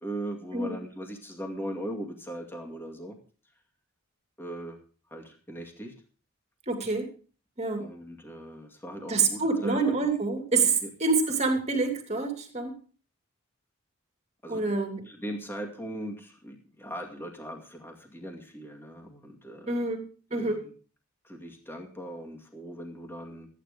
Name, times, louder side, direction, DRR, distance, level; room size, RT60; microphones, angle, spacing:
voice 1, 0.0-3.2 4.4-4.8 5.1-5.9 7.8-9.8 10.8-10.9 14.4-14.8 15.1-19.9 20.3-20.7 21.2-23.5, right 1 dB, 10° left, 2 dB, 2.2 m, -39 dB
voice 2, 6.7-7.1 7.6-7.9 9.1-12.7 14.5-15.1 19.7-20.0 20.3-20.6, right 3 dB, 30° right, 4 dB, 2.6 m, -27 dB
14.0 x 9.8 x 5.1 m, 0.39 s
head